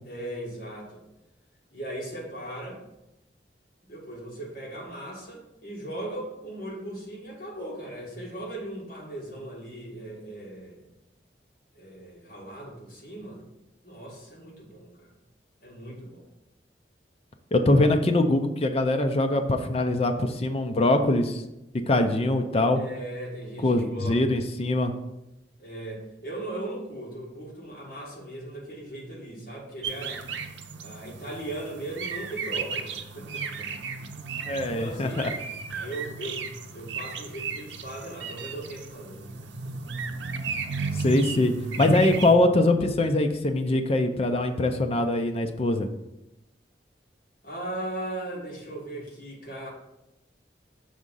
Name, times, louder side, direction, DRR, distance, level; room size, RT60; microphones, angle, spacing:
voice 1, 0.0-1.0 1.7-2.8 3.9-10.8 11.7-13.4 13.8-15.1 15.6-16.2 22.8-24.4 25.6-30.2 30.8-33.7 34.6-35.3 35.7-36.4 36.7-39.9 47.4-49.7, right 1 dB, 50° left, -3 dB, 1.9 m, -38 dB
voice 2, 17.5-21.4 21.9-22.8 23.6-24.9 34.5-35.3 40.9-45.9, left 2 dB, 35° left, 5 dB, 0.5 m, -23 dB
sound 1, 29.8-42.4, right 4 dB, 80° right, 0.6 m, -35 dB
6.4 x 3.6 x 5.4 m, 0.90 s
head